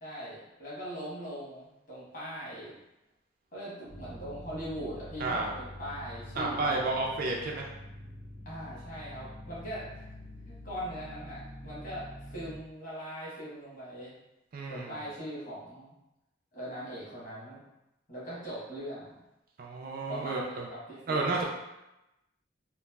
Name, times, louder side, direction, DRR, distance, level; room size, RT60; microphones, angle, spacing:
voice 1, 0.0-2.7 3.5-6.8 8.4-10.0 10.5-14.1 14.7-15.9 16.5-17.6 18.1-19.2 20.1-21.4, equal, 45° left, -8 dB, 1.1 m, -41 dB
sound 1, 3.9-12.6, left 1 dB, 80° right, 0.7 m, -46 dB
voice 2, 5.2-5.5 6.4-7.7 14.5-14.9 19.6-20.7 21.1-21.4, right 3 dB, 50° right, -1 dB, 0.3 m, -31 dB
3.1 x 2.4 x 2.3 m, 0.93 s
head